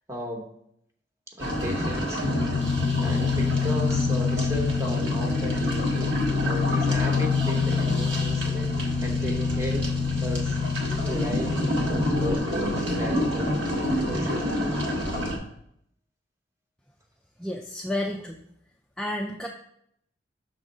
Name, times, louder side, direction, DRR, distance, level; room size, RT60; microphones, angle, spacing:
voice 1, 0.1-0.5 1.3-2.3 3.0-6.1 6.4-9.9 10.2-13.7 14.1-14.5, equal, 15° right, 1 dB, 1.0 m, -35 dB
sound 1, 1.4-15.4, equal, 75° right, 1.4 m, -29 dB
sound 2, 2.2-12.4, left 5 dB, 45° left, 0.7 m, -26 dB
voice 2, 17.4-18.4 19.0-19.5, left 1 dB, 5° left, 0 dB, 0.3 m, -31 dB
6.3 x 3.6 x 5.3 m, 0.72 s
head